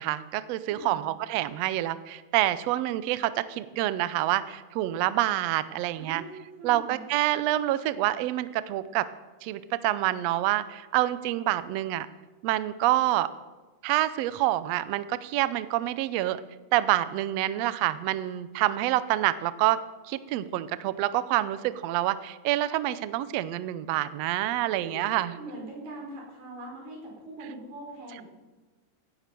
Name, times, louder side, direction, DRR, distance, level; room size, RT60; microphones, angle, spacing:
voice 1, 0.0-6.2 6.6-9.1 9.4-12.1 12.4-13.3 13.8-16.4 16.7-25.3, right 14 dB, 85° right, 15 dB, 1.4 m, -27 dB
voice 2, 0.7-1.0 5.9-7.0 24.8-28.2, right 2 dB, 60° right, -2 dB, 6.0 m, -42 dB
16.5 x 11.0 x 6.9 m, 1.3 s
omnidirectional pair, 3.8 m